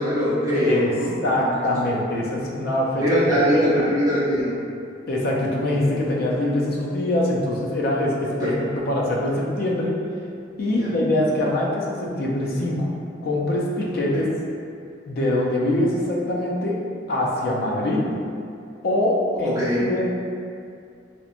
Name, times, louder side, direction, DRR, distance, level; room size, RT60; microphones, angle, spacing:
voice 1, 0.0-1.2 1.8-2.0 3.0-4.6 8.4-8.5 10.7-10.9 19.4-19.8, equal, 20° right, -11 dB, 0.7 m, -22 dB
voice 2, 0.5-0.9 1.2-3.0 3.5-3.9 5.1-10.0 10.6-12.9 13.2-14.3 15.1-16.8 17.1-18.1 18.8-20.0, left 1 dB, 55° left, -3 dB, 0.4 m, -23 dB
2.9 x 2.1 x 2.4 m, 2.4 s
head